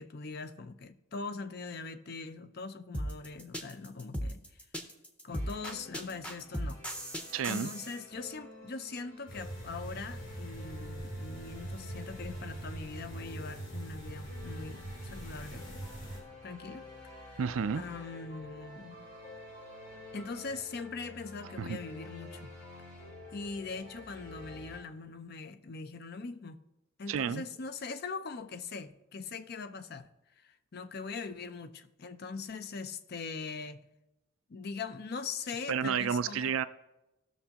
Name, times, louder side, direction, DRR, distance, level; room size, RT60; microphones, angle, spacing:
voice 1, 0.0-4.4 5.2-6.8 7.5-14.8 15.0-15.9 16.4-16.9 17.2-17.4 17.7-19.1 20.1-22.5 23.3-26.6 27.0-30.1 30.4-33.8 34.5-36.6, left 4 dB, 50° left, 0.5 m, -41 dB
sound 1, 2.9-8.0, equal, 5° left, 0.7 m, -37 dB
sound 2, 5.3-24.8, left 2 dB, 85° left, 3.0 m, -50 dB
voice 2, 7.3-7.7 17.4-17.8 21.6-21.8 27.1-27.4 35.7-36.6, right 7 dB, 80° right, 0.4 m, -31 dB
sound 3, 9.3-16.2, right 1 dB, 65° left, 3.1 m, -42 dB
16.5 x 6.5 x 2.9 m
head